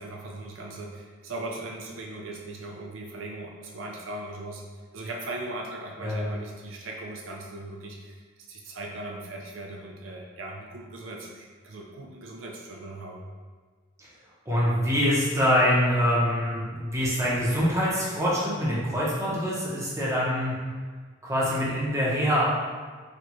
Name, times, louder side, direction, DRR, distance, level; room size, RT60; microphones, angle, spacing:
voice 1, 0.0-4.6 4.9-8.2 8.5-13.3, right 2 dB, 85° right, -1 dB, 0.5 m, -38 dB
voice 2, 14.5-20.5 21.2-22.5, equal, 15° right, -7 dB, 0.9 m, -24 dB
4.3 x 2.5 x 3.0 m, 1.5 s
head